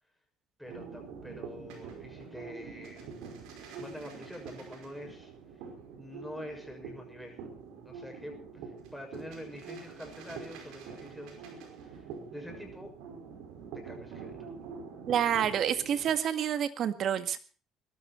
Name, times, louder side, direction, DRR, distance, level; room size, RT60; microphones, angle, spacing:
voice 1, 0.6-3.2 3.8-5.3 6.0-7.5 7.8-12.9 13.7-14.5, left 1 dB, ahead, 2 dB, 6.5 m, -46 dB
sound 1, 0.6-16.2, right 5 dB, 90° right, 5.3 m, -45 dB
voice 2, 15.1-17.4, right 9 dB, 55° right, 10 dB, 1.8 m, -28 dB
21.0 x 12.5 x 4.4 m, 0.39 s
cardioid pair, 115°, 0 cm